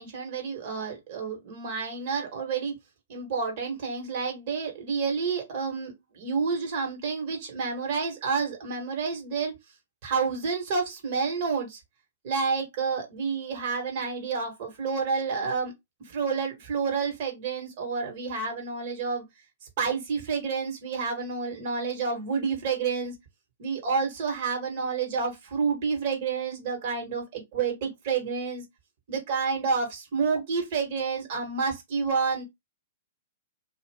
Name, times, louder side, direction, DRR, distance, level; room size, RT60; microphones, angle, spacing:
voice 1, 0.0-2.7 3.1-9.5 10.0-11.8 12.2-15.7 16.1-19.2 19.8-23.1 23.6-28.6 29.1-32.4, right 5 dB, 50° right, 1.3 m, -29 dB
2.5 x 2.4 x 3.4 m
figure-of-eight pair, 110°, 0 cm